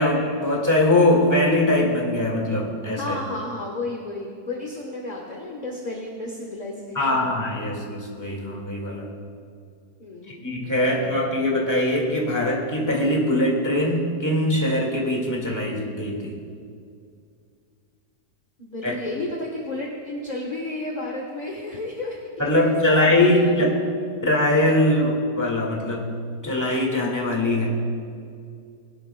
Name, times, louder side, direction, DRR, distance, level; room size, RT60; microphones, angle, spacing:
voice 1, 0.0-3.1 6.9-9.1 10.3-16.3 18.8-18.9 22.4-23.7 24.2-26.1 26.4-27.7, left 1 dB, 10° left, -2 dB, 1.7 m, -22 dB
voice 2, 3.0-7.3 10.0-10.5 10.9-11.2 18.6-23.8 24.1-24.2, left 2 dB, 30° left, -1 dB, 1.0 m, -33 dB
20.5 x 11.0 x 2.2 m, 2.3 s
omnidirectional pair, 1.9 m